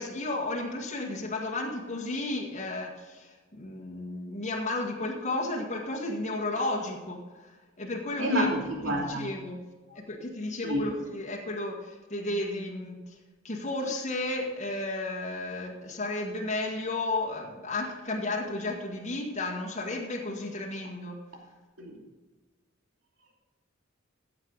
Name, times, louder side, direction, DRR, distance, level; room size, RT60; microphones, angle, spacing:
voice 1, 0.0-8.5 8.8-9.6 10.0-13.2 13.4-21.2, left 2 dB, 35° left, -2 dB, 1.9 m, -33 dB
voice 2, 8.2-9.3 9.9-10.0 10.6-10.8 21.8-21.9, equal, 65° right, -1 dB, 2.9 m, -28 dB
15.0 x 7.7 x 4.0 m, 1.3 s
head